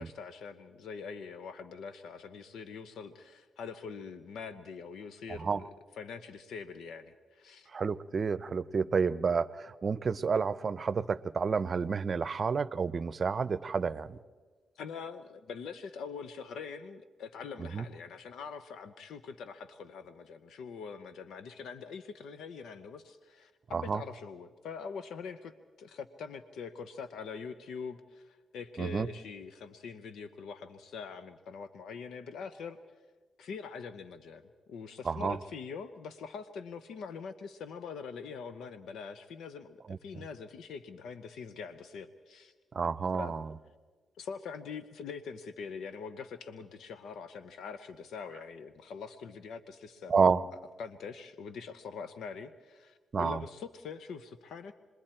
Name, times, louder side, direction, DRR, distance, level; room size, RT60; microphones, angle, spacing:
voice 1, 0.0-7.7 14.8-25.5 25.8-32.8 33.4-34.4 34.7-42.5 43.1-43.3 44.2-50.1 50.8-54.7, left 5 dB, 85° left, 11 dB, 0.7 m, -43 dB
voice 2, 7.7-14.2 17.6-17.8 23.7-24.0 28.8-29.1 35.0-35.4 42.7-43.5 50.1-50.4 53.1-53.4, right 5 dB, 45° right, 16 dB, 0.6 m, -30 dB
28.0 x 21.0 x 4.4 m, 1.4 s
cardioid pair, 85°, 0 cm